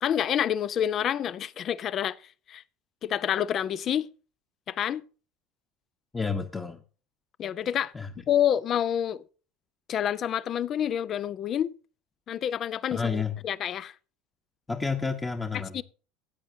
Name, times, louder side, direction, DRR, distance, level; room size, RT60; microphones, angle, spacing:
voice 1, 0.0-2.2 2.5-2.6 3.0-4.1 4.7-5.0 7.4-7.9 8.3-9.2 9.9-11.7 12.3-13.9 15.7-15.8, left 10 dB, 45° left, 0.6 m, -28 dB
voice 2, 6.1-6.8 7.9-8.1 12.9-13.4 14.7-15.8, left 5 dB, 15° left, 1.2 m, -30 dB
16.5 x 9.1 x 2.8 m
hypercardioid pair, 70°, 0 cm